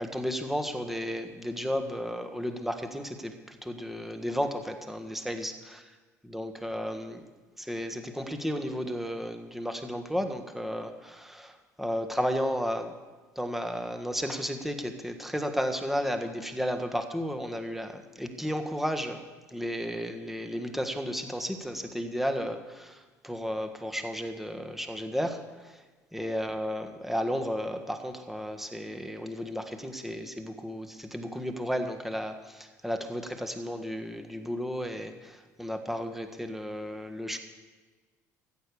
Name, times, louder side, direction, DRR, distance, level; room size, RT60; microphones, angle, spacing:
voice 1, 0.0-5.8 6.3-7.2 7.6-12.9 13.3-19.2 19.5-25.8 26.1-37.4, equal, 5° right, 6 dB, 1.6 m, -33 dB
14.5 x 8.1 x 7.0 m, 1.3 s
figure-of-eight pair, 60°, 9 cm